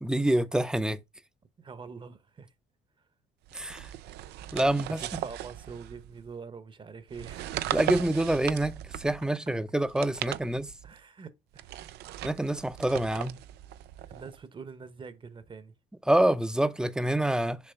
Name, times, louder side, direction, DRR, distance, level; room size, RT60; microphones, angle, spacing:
voice 1, 0.0-1.0 3.5-3.9 4.5-5.2 7.7-10.7 12.2-13.4 16.1-17.7, right 1 dB, 5° right, 0.6 m, -27 dB
voice 2, 1.6-2.5 3.0-3.1 5.0-7.7 10.8-11.7 14.1-15.7, right 5 dB, 30° right, 0.9 m, -45 dB
sound 1, 3.5-6.3 7.1-9.3 9.8-11.0 11.5-14.4, right 14 dB, 75° right, 0.5 m, -38 dB
6.9 x 2.9 x 5.6 m
cardioid pair, 110°, 17 cm